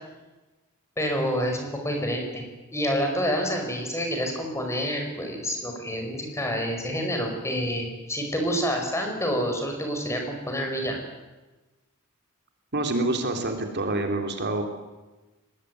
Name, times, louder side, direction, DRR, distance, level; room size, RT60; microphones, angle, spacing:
voice 1, 1.0-2.4 2.7-11.0, equal, 15° left, 3 dB, 5.2 m, -28 dB
voice 2, 12.7-14.6, right 2 dB, 50° right, 5 dB, 3.1 m, -27 dB
22.5 x 19.5 x 9.6 m, 1.2 s
head